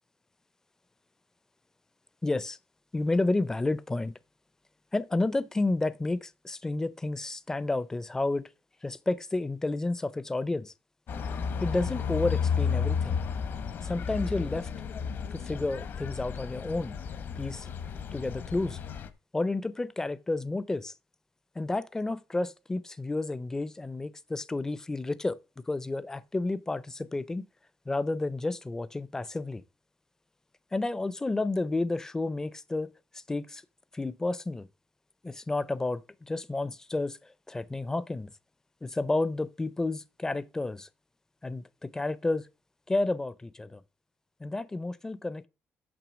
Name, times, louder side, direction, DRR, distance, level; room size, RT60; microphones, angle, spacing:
voice 1, 2.2-2.6 2.9-4.1 4.9-8.5 8.8-10.7 11.6-13.2 13.8-14.7 15.3-17.0 17.4-17.7 18.1-18.8 19.3-20.9 21.6-25.4 25.7-27.4 27.9-29.6 30.7-32.9 33.3-33.6 33.9-34.7 35.2-37.2 37.5-38.3 38.8-40.9 41.4-42.4 42.9-43.8 44.4-45.5, left 2 dB, 10° left, 0.5 m, -31 dB
sound 1, 11.1-19.1, left 6 dB, 50° left, 1.0 m, -32 dB
6.8 x 6.1 x 6.1 m
cardioid pair, 140°, 4 cm